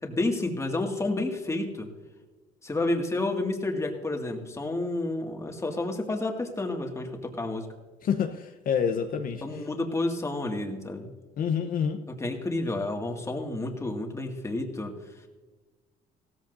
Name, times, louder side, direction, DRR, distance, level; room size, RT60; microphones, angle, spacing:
voice 1, 0.0-1.9 2.6-7.7 9.4-11.1 12.1-14.9, left 2 dB, 15° left, 2 dB, 2.1 m, -30 dB
voice 2, 8.0-9.7 11.4-12.0, left 7 dB, 55° left, 4 dB, 0.9 m, -28 dB
16.5 x 14.0 x 2.7 m, 1.3 s
cardioid pair, 110°, 17 cm